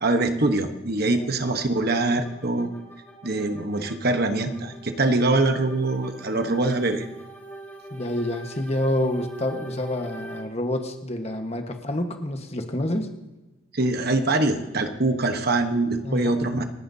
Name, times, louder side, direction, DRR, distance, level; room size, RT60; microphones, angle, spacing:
voice 1, 0.0-2.7 3.2-7.1 13.7-16.6, right 2 dB, 50° right, 7 dB, 1.1 m, -23 dB
sound 1, 1.4-10.4, right 2 dB, 10° left, 3.8 m, -43 dB
voice 2, 7.9-13.1 16.0-16.3, left 1 dB, 30° left, 5 dB, 1.4 m, -28 dB
29.0 x 10.0 x 2.8 m, 1.1 s
head